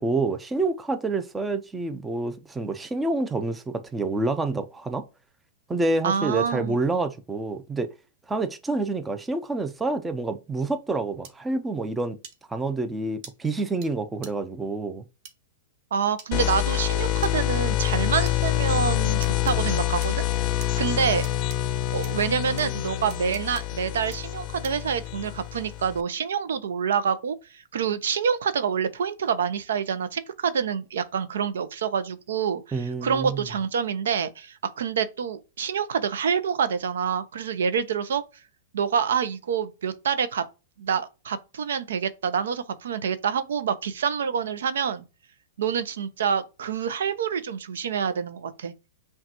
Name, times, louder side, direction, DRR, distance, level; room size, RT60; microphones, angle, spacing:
voice 1, 0.0-5.0 5.7-7.9 8.3-12.2 12.5-15.0 32.7-33.5, right 3 dB, 10° right, 0.5 m, -28 dB
voice 2, 6.0-6.8 15.9-20.3 20.6-21.2 21.9-27.4 27.7-38.2 38.7-40.4 40.8-45.0 45.6-48.7, right 7 dB, 75° right, 0.5 m, -27 dB
sound 1, 11.2-11.3 12.2-12.4 13.2-13.3 13.8-13.9 14.2-14.3 15.2-15.3 16.2-16.3 17.2-17.3 18.3-18.4 19.2-19.5 20.0-20.7 21.2-21.6 22.0-22.1 22.6-22.7 23.1-23.6 24.1-24.2 24.6-24.9, right 6 dB, 45° right, 1.0 m, -43 dB
sound 2, 16.3-26.0, left 14 dB, 40° left, 0.4 m, -26 dB
5.7 x 2.3 x 2.7 m
hypercardioid pair, 120°, 0 cm